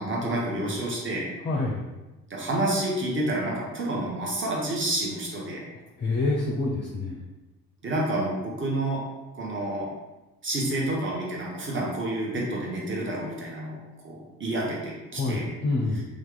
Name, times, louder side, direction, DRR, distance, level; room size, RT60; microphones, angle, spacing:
voice 1, 0.0-1.3 2.3-5.6 7.8-9.0 9.3-9.9 10.4-13.8 14.0-15.4, right 1 dB, 25° right, -3 dB, 1.1 m, -29 dB
voice 2, 1.4-1.8 6.0-7.2 15.1-16.0, left 2 dB, 25° left, -2 dB, 0.6 m, -27 dB
2.9 x 2.4 x 3.8 m, 1.1 s
figure-of-eight pair, 50°, 48 cm